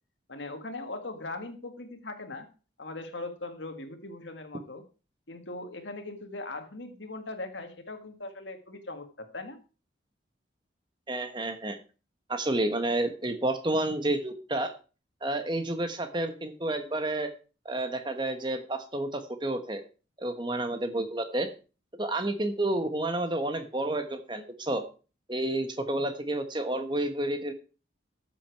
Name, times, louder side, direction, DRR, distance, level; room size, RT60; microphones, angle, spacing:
voice 1, 0.3-2.5 2.8-4.8 5.3-9.6, left 2 dB, 70° left, 7 dB, 1.9 m, -40 dB
voice 2, 11.1-11.8 12.3-14.7 15.2-17.3 17.6-19.8 20.2-21.5 21.9-24.8 25.3-27.5, right 1 dB, 25° right, 8 dB, 1.2 m, -30 dB
13.0 x 7.5 x 4.7 m, 0.34 s
head